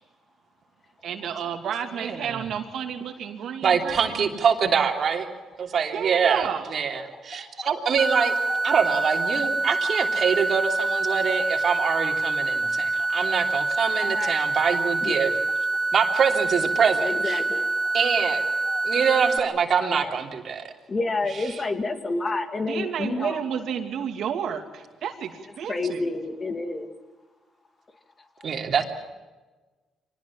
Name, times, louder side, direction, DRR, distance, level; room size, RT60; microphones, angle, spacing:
voice 1, 1.0-4.0 5.9-6.6 22.7-26.0, right 8 dB, 70° right, 5 dB, 2.8 m, -31 dB
voice 2, 1.9-2.5 3.6-5.3 5.7-8.3 8.6-15.3 15.9-17.4 17.9-18.4 18.8-20.7 28.4-28.8, right 6 dB, 55° right, 4 dB, 3.2 m, -24 dB
voice 3, 7.4-7.7 8.2-8.6 10.6-10.7 11.1-11.2 12.8-13.3 14.0-14.3 15.0-15.3 17.0-18.0 18.6-19.2 19.8-20.1 20.9-23.4 25.7-26.9, left 3 dB, 35° left, 7 dB, 2.6 m, -30 dB
sound 1, 8.0-19.4, right 3 dB, 15° right, 1.6 m, -26 dB
24.5 x 19.5 x 7.5 m, 1.3 s
cardioid pair, 90°, 0 cm